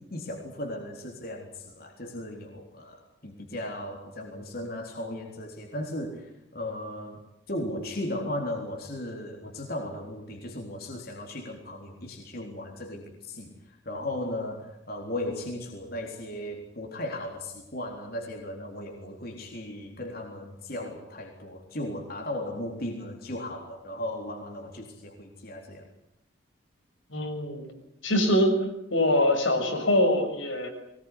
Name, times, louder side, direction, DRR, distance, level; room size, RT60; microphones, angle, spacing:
voice 1, 0.0-7.2 7.5-25.9, left 1 dB, 50° left, 1 dB, 3.8 m, -36 dB
voice 2, 27.1-27.6 28.0-28.6 28.9-30.7, left 1 dB, 85° left, 3 dB, 6.7 m, -23 dB
22.5 x 20.0 x 9.9 m, 0.79 s
head